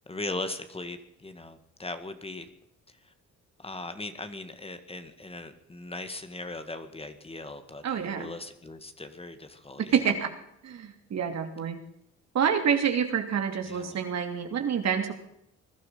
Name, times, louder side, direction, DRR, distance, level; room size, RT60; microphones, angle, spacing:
voice 1, 0.1-2.5 3.0-3.1 3.6-10.0 13.6-14.0, left 2 dB, 20° left, 9 dB, 1.9 m, -39 dB
voice 2, 7.8-8.3 9.8-10.3 10.6-11.8 12.3-15.1, right 7 dB, 60° right, 6 dB, 2.9 m, -27 dB
21.0 x 12.0 x 5.6 m, 0.76 s
cardioid pair, 90°, 30 cm